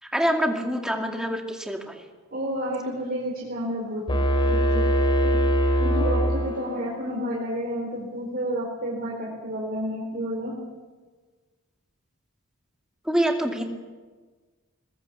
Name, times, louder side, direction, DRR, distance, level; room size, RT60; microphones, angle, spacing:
voice 1, 0.0-2.0 13.0-13.7, equal, 5° right, 2 dB, 2.3 m, -26 dB
voice 2, 2.3-4.0 4.5-4.8 5.2-5.4 5.8-10.5, equal, 45° right, -3 dB, 4.5 m, -30 dB
sound 1, 4.1-7.0, equal, 25° left, 2.7 m, -22 dB
21.5 x 21.5 x 7.2 m, 1.4 s
head